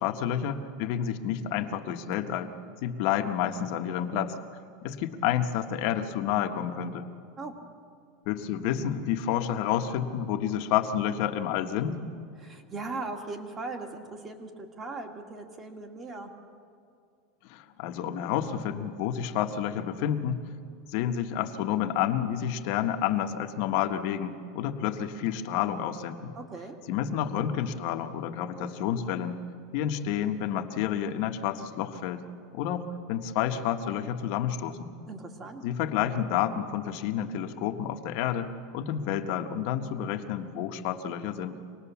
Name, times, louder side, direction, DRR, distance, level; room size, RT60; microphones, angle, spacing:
voice 1, 0.0-2.5 2.8-4.3 4.8-7.1 8.2-12.0 17.5-20.4 20.9-26.3 26.9-29.4 29.7-32.2 32.5-34.9 35.6-41.6, left 9 dB, 55° left, 6 dB, 1.4 m, -29 dB
voice 2, 12.4-16.3 26.4-26.8 35.1-35.7, right 3 dB, 20° right, 4 dB, 2.0 m, -39 dB
26.0 x 19.0 x 7.2 m, 2.3 s
supercardioid pair, 155°, 0 cm